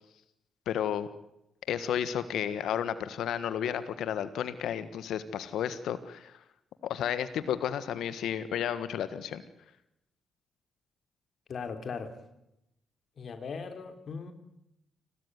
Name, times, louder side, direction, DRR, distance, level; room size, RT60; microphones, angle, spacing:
voice 1, 0.7-1.1 1.7-6.4 6.8-9.4, left 9 dB, 80° left, 13 dB, 1.5 m, -32 dB
voice 2, 11.5-12.1 13.2-14.3, left 5 dB, 60° left, 9 dB, 3.3 m, -38 dB
29.5 x 13.5 x 9.6 m, 0.84 s
cardioid pair, 80°, 0 cm